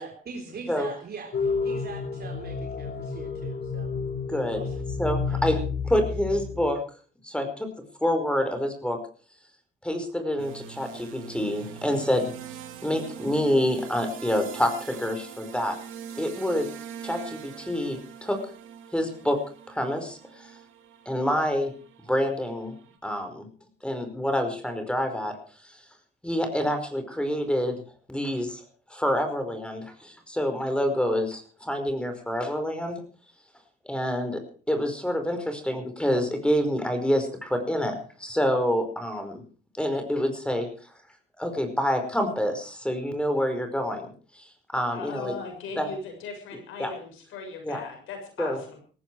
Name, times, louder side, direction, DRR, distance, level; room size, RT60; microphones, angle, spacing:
voice 1, 0.0-3.9 4.5-4.8 5.3-5.4, right 5 dB, 55° right, 3 dB, 3.7 m, -42 dB
sound 1, 1.3-6.7, left 5 dB, 55° left, 3.2 m, -30 dB
voice 2, 4.3-4.6 5.0-5.6 5.8-6.8 7.2-7.7 8.0-9.0 9.8-12.2 12.8-15.8 16.2-16.7 17.0-18.4 18.9-19.4 19.7-20.5 21.1-21.7 22.1-22.7 23.0-23.5 23.8-25.4 26.2-27.8 28.1-28.6 28.9-33.0 33.9-34.4 34.7-39.4 39.8-40.7 41.4-44.1 44.4-44.5 44.7-45.4 45.8-45.9 46.8-46.9 47.6-47.8 48.4-48.6, equal, 5° left, 7 dB, 5.1 m, -27 dB
sound 2, 10.4-23.0, right 9 dB, 85° right, 2.6 m, -43 dB
voice 3, 44.9-48.8, left 4 dB, 90° left, 5 dB, 6.7 m, -39 dB
18.0 x 14.5 x 4.8 m, 0.41 s
cardioid pair, 90°, 20 cm